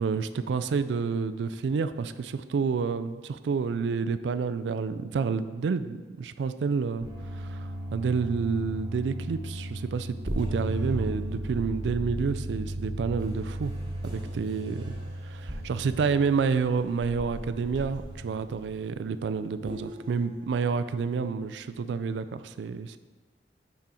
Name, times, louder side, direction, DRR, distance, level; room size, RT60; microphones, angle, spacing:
voice 1, 0.0-7.1 7.3-13.7 14.0-14.9 15.2-23.0, right 5 dB, 75° right, 12 dB, 0.3 m, -29 dB
sound 1, 7.0-18.8 19.7-20.0, right 1 dB, 25° right, 1.2 m, -36 dB
6.0 x 5.1 x 4.2 m, 1.3 s
head